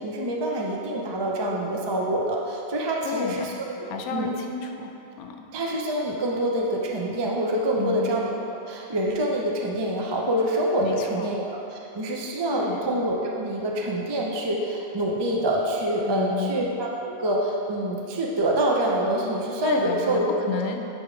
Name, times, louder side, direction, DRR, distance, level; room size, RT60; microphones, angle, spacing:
voice 1, 0.0-4.3 5.5-8.4 8.7-20.3, right 1 dB, 40° right, -2 dB, 0.3 m, -26 dB
voice 2, 3.0-3.5 3.9-4.9 5.2-5.4 7.8-8.2 10.8-11.3 12.5-12.8 16.1-16.5 19.6-20.8, left 5 dB, 75° left, 3 dB, 1.1 m, -30 dB
9.8 x 3.6 x 5.0 m, 2.8 s
omnidirectional pair, 1.6 m